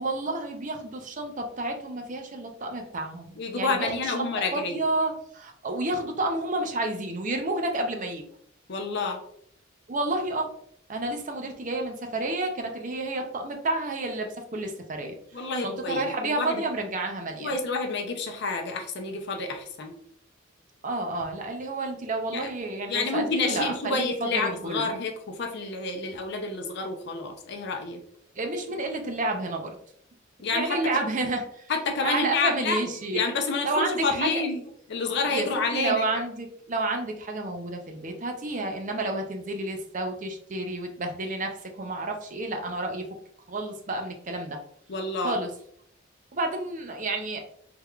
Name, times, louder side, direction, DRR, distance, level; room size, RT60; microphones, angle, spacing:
voice 1, 0.0-4.2 4.5-8.2 9.9-10.5 10.9-17.6 20.8-24.9 28.4-29.8 30.5-31.7 32.0-33.2 33.6-34.4 35.3-43.1 43.5-44.6 45.2-45.5 46.3-47.4, right 2 dB, 40° right, 3 dB, 0.6 m, -30 dB
voice 2, 3.4-4.8 8.7-9.2 15.3-16.6 17.4-20.0 22.3-22.5 22.9-28.0 30.4-31.0 31.7-32.8 33.1-34.6 34.9-36.2 44.9-45.3, left 3 dB, 60° left, 3 dB, 0.6 m, -29 dB
3.4 x 3.3 x 2.3 m, 0.66 s
head